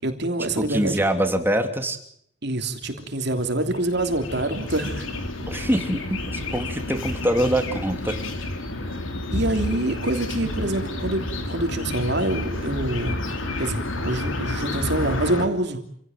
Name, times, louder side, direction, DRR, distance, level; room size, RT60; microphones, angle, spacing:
voice 1, 0.0-1.0 2.4-5.1 9.3-13.1 13.6-15.8, right 1 dB, 55° right, 5 dB, 3.2 m, -26 dB
voice 2, 0.6-2.0 5.5-8.2 8.9-9.0, right 1 dB, 10° right, 6 dB, 2.8 m, -24 dB
sound 1, 2.8-15.5, left 2 dB, 70° left, 3.6 m, -30 dB
28.0 x 17.0 x 9.3 m, 0.67 s
head